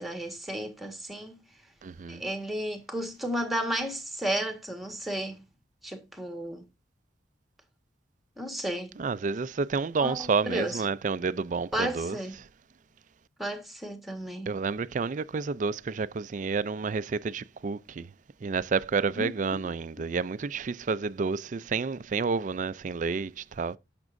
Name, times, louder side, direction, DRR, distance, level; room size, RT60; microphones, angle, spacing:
voice 1, 0.0-1.4 2.1-5.4 5.8-6.7 8.4-9.0 10.0-10.8 11.7-12.4 13.4-14.6 19.2-19.3 20.0-20.1, right 1 dB, ahead, 1.5 m, -33 dB
voice 2, 1.8-2.2 9.0-12.2 14.5-18.1 18.4-23.8, right 4 dB, 45° right, 0.4 m, -30 dB
17.0 x 6.0 x 2.6 m
head